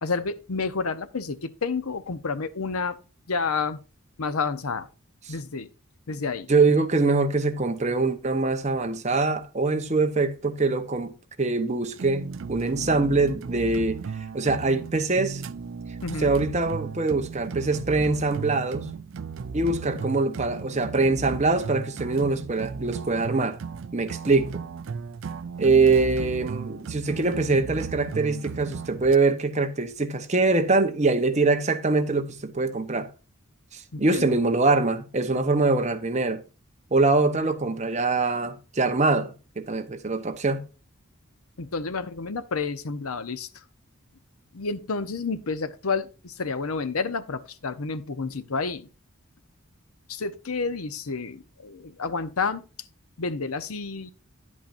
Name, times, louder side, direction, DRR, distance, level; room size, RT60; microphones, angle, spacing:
voice 1, 0.0-3.0 3.3-3.8 4.2-4.9 5.3-5.7 6.1-6.5 16.0-16.3 33.9-34.4 41.6-43.6 44.5-48.9 50.1-52.6 53.2-54.1, left 4 dB, 90° left, 0.8 m, -30 dB
voice 2, 6.5-11.1 11.4-14.0 14.3-15.4 16.2-18.9 19.5-23.6 23.9-24.6 25.6-33.1 33.7-36.4 36.9-40.6, right 3 dB, 30° right, 0.9 m, -23 dB
sound 1, 11.9-29.2, right 5 dB, 60° right, 0.4 m, -36 dB
10.0 x 8.5 x 2.5 m
head